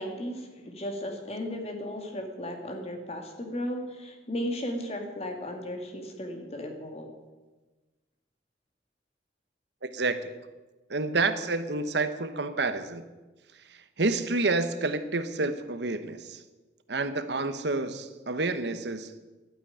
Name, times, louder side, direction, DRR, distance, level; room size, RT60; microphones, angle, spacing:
voice 1, 0.0-7.1, left 1 dB, 35° left, 4 dB, 2.2 m, -35 dB
voice 2, 9.8-10.3 10.9-13.0 14.0-16.4 16.9-19.1, right 3 dB, 70° right, 10 dB, 1.0 m, -29 dB
12.0 x 9.2 x 10.0 m, 1.2 s
head